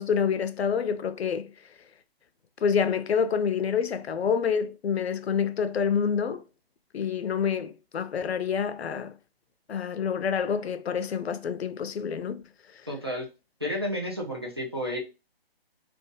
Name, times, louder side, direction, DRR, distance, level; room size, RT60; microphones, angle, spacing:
voice 1, 0.0-1.5 2.6-6.4 6.9-9.2 9.7-12.4 12.7-12.8, left 6 dB, 90° left, 0.6 m, -27 dB
voice 2, 12.9-13.3 13.6-15.0, equal, 25° right, 0.5 m, -31 dB
2.6 x 2.3 x 3.6 m
hypercardioid pair, 180°, 31 cm